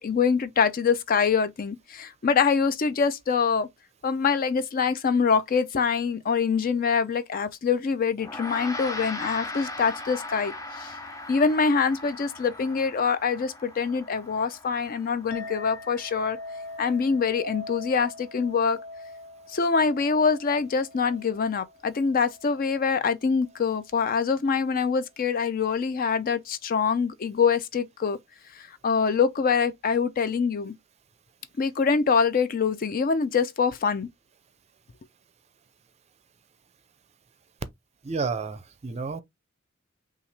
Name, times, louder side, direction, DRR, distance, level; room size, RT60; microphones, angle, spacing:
voice 1, 0.0-3.7 4.0-10.9 11.3-16.4 16.8-18.8 19.5-28.2 28.6-30.7 31.6-34.1, left 5 dB, 45° left, 0.4 m, -24 dB
Gong, 8.2-17.7, left 2 dB, 15° left, 0.7 m, -39 dB
Chink clink, 15.3-24.0, left 2 dB, 70° left, 1.0 m, -43 dB
voice 2, 38.0-39.2, right 4 dB, 35° right, 0.5 m, -31 dB
5.7 x 2.4 x 3.2 m
head